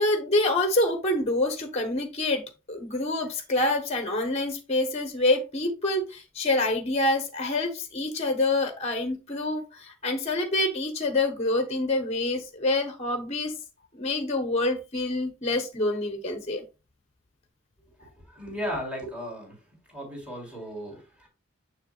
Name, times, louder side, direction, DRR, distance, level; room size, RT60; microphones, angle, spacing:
voice 1, 0.0-2.4 2.7-13.5 13.9-16.6, left 2 dB, 30° left, 6 dB, 0.9 m, -26 dB
voice 2, 18.0-19.6 19.9-21.3, equal, 5° right, 0 dB, 3.5 m, -36 dB
7.0 x 6.6 x 2.3 m, 0.29 s
head